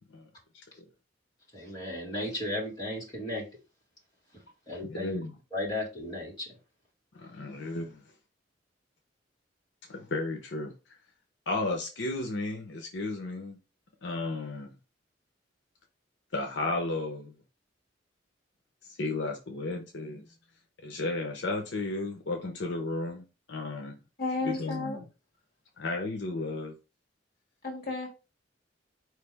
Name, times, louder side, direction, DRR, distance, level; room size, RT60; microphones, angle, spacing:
voice 1, 1.5-3.4 4.7-5.2 5.5-6.5, left 1 dB, 20° left, 2.4 m, -35 dB
voice 2, 4.8-5.4 7.1-8.0 9.9-10.7 11.5-13.6 14.0-14.7 16.3-17.3 18.8-20.2 20.8-24.0 24.4-25.1 25.8-26.8, left 2 dB, 75° left, 0.8 m, -34 dB
voice 3, 24.2-25.0 27.6-28.1, left 3 dB, 55° left, 1.8 m, -32 dB
4.6 x 3.3 x 3.4 m
head